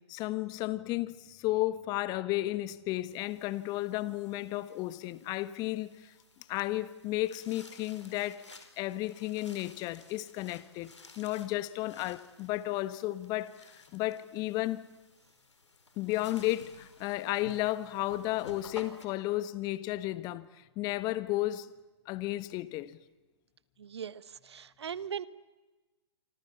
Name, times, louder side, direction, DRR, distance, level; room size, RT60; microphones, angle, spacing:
voice 1, 0.0-5.9 6.5-8.4 8.8-14.8 16.0-20.5 20.8-21.7 22.1-23.0, left 16 dB, 30° left, 1.3 m, -33 dB
sound 1, 3.1-19.1, left 3 dB, 85° left, 4.6 m, -55 dB
voice 2, 23.8-25.3, right 8 dB, 70° right, 1.4 m, -39 dB
27.5 x 25.0 x 7.1 m
hypercardioid pair, 130°, 15 cm